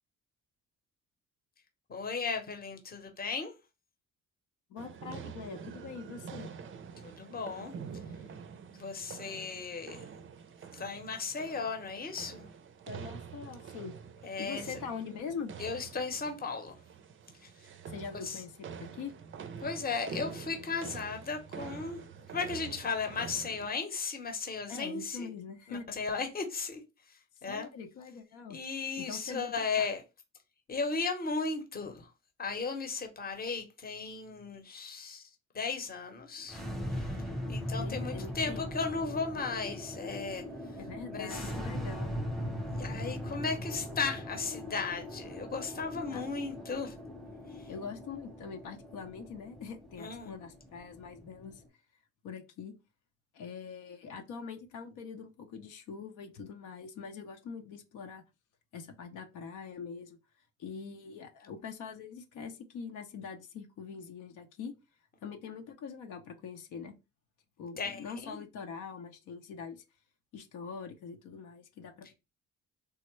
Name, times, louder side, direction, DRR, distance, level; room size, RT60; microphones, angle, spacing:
voice 1, 1.9-3.5 7.0-7.7 8.8-10.1 10.7-12.5 14.2-14.8 15.6-16.8 17.4-17.7 18.2-18.4 19.6-22.0 22.3-25.3 25.7-27.7 28.5-30.0 30.7-32.1 32.4-35.3 35.5-36.6 37.5-40.4 41.1-41.5 42.7-46.9 47.5-47.7 50.0-50.3 67.8-68.4, left 4 dB, 30° left, 0.8 m, -36 dB
voice 2, 4.7-6.5 12.9-13.9 14.4-15.6 17.9-19.1 24.7-26.0 27.5-28.6 29.0-29.9 37.8-38.7 40.9-42.1 46.1-46.2 47.7-51.6 52.2-52.7 53.3-58.2 58.7-60.2 60.6-64.7 65.2-66.9 67.6-69.8 70.3-72.1, left 6 dB, 80° left, 0.7 m, -43 dB
sound 1, 4.8-23.7, right 6 dB, 40° right, 0.4 m, -46 dB
sound 2, 36.4-51.7, equal, ahead, 0.8 m, -40 dB
3.5 x 2.1 x 3.0 m
cardioid pair, 90°, 30 cm